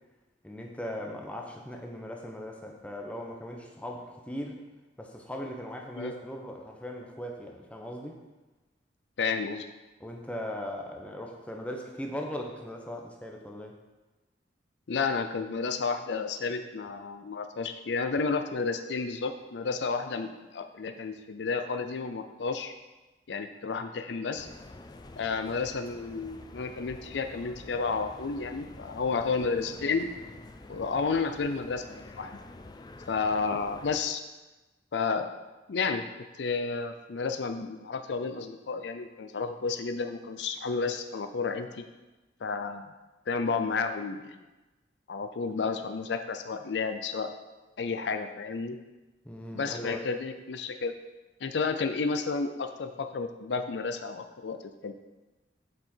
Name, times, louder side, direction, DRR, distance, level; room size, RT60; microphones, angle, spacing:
voice 1, 0.4-4.6 5.0-8.2 10.0-13.8 49.2-50.0, left 1 dB, 5° left, 1 dB, 0.9 m, -39 dB
voice 2, 9.2-9.7 14.9-22.7 23.3-24.5 25.2-30.1 30.7-32.3 33.1-34.2 34.9-35.3 35.7-36.0 36.4-41.8 42.4-42.9 43.3-44.3 45.1-47.3 47.8-48.8 49.5-50.9 51.4-54.6 54.8-54.9, left 4 dB, 75° left, 8 dB, 0.5 m, -31 dB
sound 1, 24.4-34.0, left 2 dB, 25° left, 0.4 m, -48 dB
7.7 x 6.3 x 4.4 m, 1.1 s
head